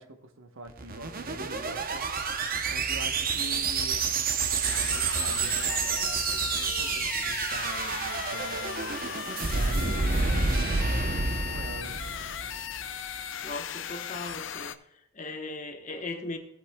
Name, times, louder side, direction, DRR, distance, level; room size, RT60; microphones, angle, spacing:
voice 1, 0.0-2.0 2.5-4.1 4.7-12.0, right 2 dB, 65° right, 1.0 m, -44 dB
sound 1, 0.7-13.0, right 4 dB, 40° right, 0.8 m, -29 dB
sound 2, 4.6-14.7, left 9 dB, 60° left, 0.6 m, -37 dB
voice 2, 13.4-14.7 15.1-16.4, left 2 dB, 35° left, 1.1 m, -37 dB
16.5 x 8.3 x 2.3 m
head